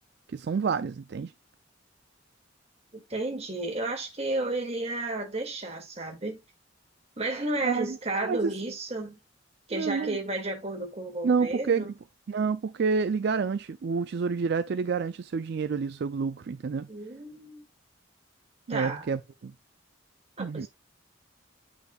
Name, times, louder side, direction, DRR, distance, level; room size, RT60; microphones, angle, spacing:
voice 1, 0.3-1.3 7.6-8.5 9.7-10.2 11.2-11.9 12.3-16.9 18.7-19.5 20.4-20.7, right 5 dB, 55° right, 0.4 m, -29 dB
voice 2, 2.9-6.4 7.2-9.2 9.7-11.9 16.9-17.6 18.7-19.1 20.4-20.7, right 2 dB, 30° right, 2.2 m, -32 dB
8.9 x 5.7 x 2.3 m
head